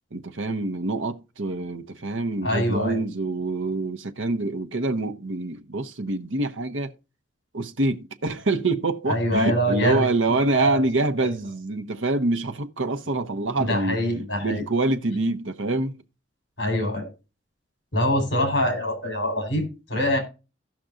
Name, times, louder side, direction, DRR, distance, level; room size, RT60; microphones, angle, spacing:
voice 1, 0.1-6.9 7.5-14.0 14.4-16.0, right 2 dB, 80° right, 1.0 m, -26 dB
voice 2, 2.4-3.0 9.1-10.1 10.5-10.8 11.2-11.3 13.6-14.6 16.6-17.1 17.9-20.2, equal, 60° left, 4.1 m, -24 dB
16.0 x 6.0 x 2.5 m
head